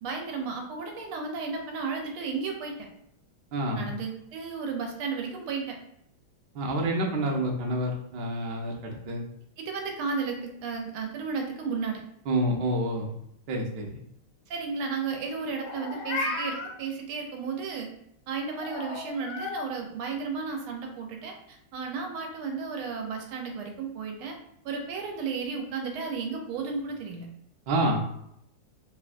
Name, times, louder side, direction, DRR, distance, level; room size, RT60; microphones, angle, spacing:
voice 1, 0.0-2.7 3.8-5.8 9.6-12.0 14.5-17.9 18.3-24.4 24.6-27.3, right 5 dB, 85° right, 2 dB, 1.5 m, -33 dB
voice 2, 3.5-3.9 6.5-9.2 12.3-13.1 13.5-14.0 27.7-28.0, right 1 dB, 70° right, -1 dB, 1.0 m, -28 dB
Meow, 15.6-16.7 18.6-19.7, left 3 dB, 75° left, 1.3 m, -34 dB
3.5 x 2.2 x 2.4 m, 0.73 s
omnidirectional pair, 2.3 m